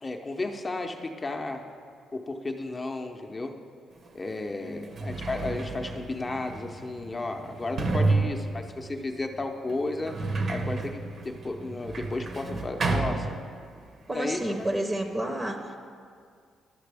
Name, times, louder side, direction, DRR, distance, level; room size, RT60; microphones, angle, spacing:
voice 1, 0.0-1.6 2.1-3.6 4.1-10.1 10.5-13.3 14.1-14.7, left 2 dB, 25° left, 4 dB, 0.7 m, -33 dB
Sliding door, 4.0-4.1 4.7-13.9 14.2-15.0, right 3 dB, 50° right, 0.8 m, -31 dB
voice 2, 14.1-15.8, right 1 dB, 20° right, 4 dB, 0.7 m, -30 dB
12.0 x 5.7 x 3.4 m, 2.2 s
cardioid pair, 90°, 0 cm